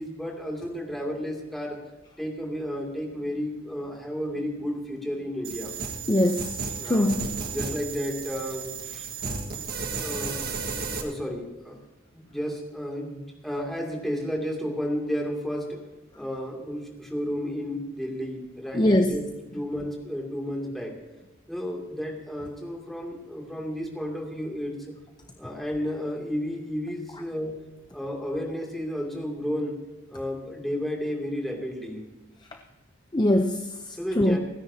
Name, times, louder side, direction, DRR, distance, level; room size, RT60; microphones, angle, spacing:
voice 1, 0.0-1.8 2.2-5.7 6.8-7.1 7.5-9.1 10.0-10.4 11.0-11.8 12.1-15.8 16.1-19.2 19.5-20.9 21.5-25.0 25.4-27.6 27.9-29.7 30.1-32.0 34.0-34.4, equal, ahead, -1 dB, 2.6 m, -32 dB
sound 1, 5.4-11.0, right 5 dB, 50° right, 1.7 m, -33 dB
voice 2, 6.1-7.3 18.7-19.2 33.1-34.4, left 1 dB, 20° left, 5 dB, 0.7 m, -23 dB
29.5 x 10.0 x 2.8 m, 1.2 s
head